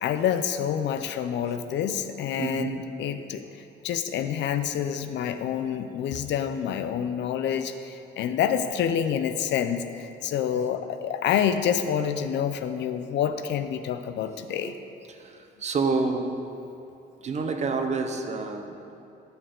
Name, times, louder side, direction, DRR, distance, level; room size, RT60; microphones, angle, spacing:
voice 1, 0.0-3.5 3.8-14.7, left 8 dB, 70° left, 9 dB, 0.5 m, -27 dB
voice 2, 2.4-2.8 14.6-14.7 15.1-16.3 17.2-18.8, right 4 dB, 35° right, 5 dB, 0.7 m, -28 dB
10.0 x 6.8 x 3.7 m, 2.6 s
cardioid pair, 140°, 19 cm